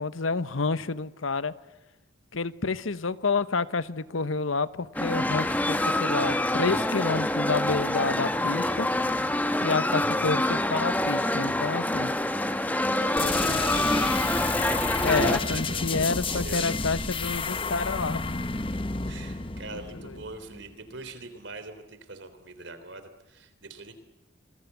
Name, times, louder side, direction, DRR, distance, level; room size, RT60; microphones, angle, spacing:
voice 1, 0.0-1.5 2.3-8.9 9.6-12.1 13.2-13.6 15.0-18.4 19.7-19.8, left 4 dB, 85° left, 1.0 m, -29 dB
sound 1, 4.9-15.4, left 1 dB, 10° left, 1.1 m, -26 dB
voice 2, 13.0-14.4 14.7-16.7 19.1-23.9, right 3 dB, 65° right, 3.5 m, -43 dB
sound 2, 13.2-20.7, left 4 dB, 25° left, 1.1 m, -31 dB
26.5 x 22.0 x 8.2 m
head